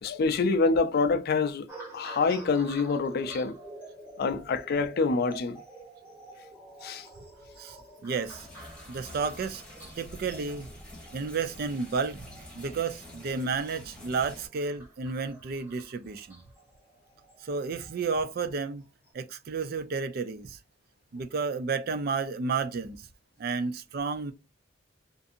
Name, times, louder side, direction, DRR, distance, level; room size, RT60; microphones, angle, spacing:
voice 1, 0.0-1.7 1.9-3.6 4.2-5.6 6.8-7.1, left 4 dB, 55° left, 0.4 m, -26 dB
sound 1, 1.7-18.1 18.8-19.1, right 2 dB, 15° right, 1.2 m, -49 dB
voice 2, 8.0-8.5 8.9-9.6 10.0-10.7 11.1-12.3 12.5-16.4 17.4-18.8 19.1-20.6 21.1-23.1 23.4-24.3, right 4 dB, 55° right, 0.4 m, -31 dB
sound 2, 8.3-14.5, left 1 dB, 5° left, 1.0 m, -48 dB
2.6 x 2.5 x 2.5 m
head